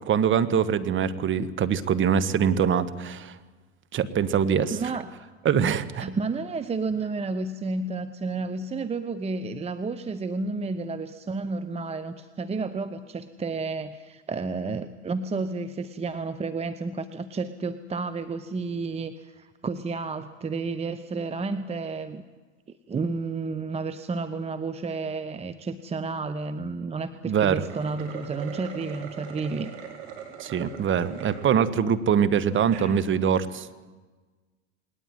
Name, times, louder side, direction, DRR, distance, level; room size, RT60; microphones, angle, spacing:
voice 1, 0.1-3.3 3.9-4.8 5.4-6.0 27.3-27.6 30.4-33.9, right 8 dB, 35° right, 12 dB, 1.5 m, -23 dB
voice 2, 4.7-5.1 6.0-22.2 22.9-29.7, right 4 dB, 20° right, 11 dB, 0.9 m, -31 dB
sound 1, 27.6-31.5 32.0-32.1 32.6-32.9, right 8 dB, 75° right, 4.4 m, -40 dB
20.0 x 18.5 x 9.1 m, 1.3 s
hypercardioid pair, 90°, 34 cm